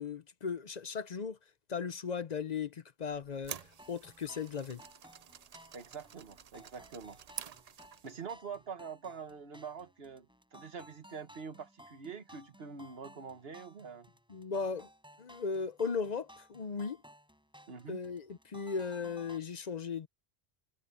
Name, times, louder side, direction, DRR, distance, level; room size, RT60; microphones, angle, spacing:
voice 1, 0.0-1.4 1.7-3.6 3.9-4.8 14.3-14.9 15.2-17.0 17.9-20.1, left 5 dB, 45° left, 0.7 m, -37 dB
sound 1, 3.1-8.2, right 7 dB, 45° right, 0.6 m, -49 dB
sound 2, 3.6-19.4, equal, 5° right, 6.3 m, -58 dB
voice 2, 5.7-7.2 8.0-14.1 17.7-18.0, right 6 dB, 65° right, 1.6 m, -45 dB
omnidirectional pair, 1.1 m